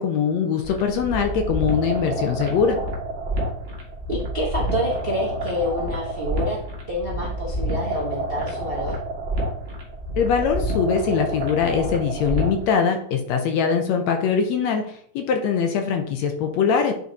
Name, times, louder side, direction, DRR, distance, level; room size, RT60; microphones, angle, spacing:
voice 1, 0.0-2.8 10.2-14.8 15.2-16.9, left 6 dB, 70° left, 5 dB, 1.7 m, -22 dB
sound 1, 0.6-12.6, right 1 dB, 30° right, 1.1 m, -28 dB
voice 2, 4.1-6.6 6.9-9.0, left 1 dB, 85° right, -3 dB, 0.5 m, -28 dB
9.4 x 4.0 x 4.1 m, 0.63 s
omnidirectional pair, 3.6 m